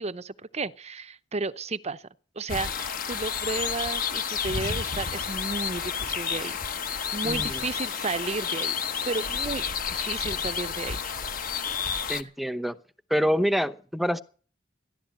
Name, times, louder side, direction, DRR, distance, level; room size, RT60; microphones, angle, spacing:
voice 1, 0.0-2.0 2.4-6.6 7.1-8.7 9.1-11.0 11.8-12.1, right 3 dB, 35° right, 0.7 m, -33 dB
sound 1, 2.5-12.2, left 7 dB, 50° left, 1.0 m, -30 dB
voice 2, 7.2-7.6 12.1-12.8 13.1-14.2, equal, ahead, 0.8 m, -26 dB
14.5 x 11.0 x 7.8 m
head